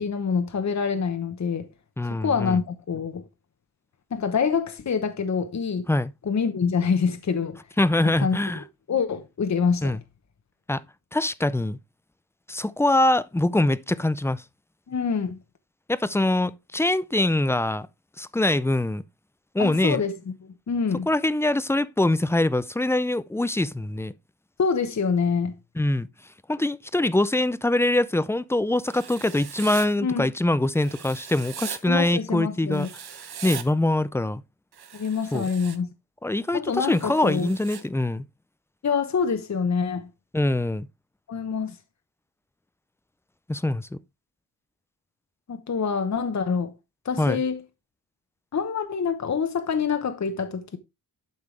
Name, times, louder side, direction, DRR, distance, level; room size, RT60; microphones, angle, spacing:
voice 1, 0.0-1.7 2.2-3.2 4.1-5.9 6.2-7.6 8.0-8.6 8.9-10.0 14.9-15.4 19.6-21.1 24.6-25.5 30.0-30.3 31.9-32.9 34.9-35.9 36.5-37.5 38.8-40.1 41.3-41.8 45.5-46.7 47.0-47.6 48.5-50.8, left 6 dB, 45° left, 1.0 m, -26 dB
voice 2, 2.0-2.6 5.9-6.1 7.8-8.6 9.8-10.0 10.7-10.8 11.1-11.8 12.5-14.4 15.9-17.9 18.2-19.0 19.5-20.0 21.1-24.1 25.8-26.1 26.5-32.9 33.4-34.4 35.3-35.5 36.2-38.3 40.3-40.9 43.5-44.0 47.2-47.4, left 1 dB, 5° left, 0.4 m, -23 dB
Writing, 28.9-29.9 30.8-31.8 32.7-33.6 34.7-35.8 36.8-37.8, right 8 dB, 75° right, 1.3 m, -39 dB
11.5 x 5.5 x 3.3 m
wide cardioid pair, 140°, 38 cm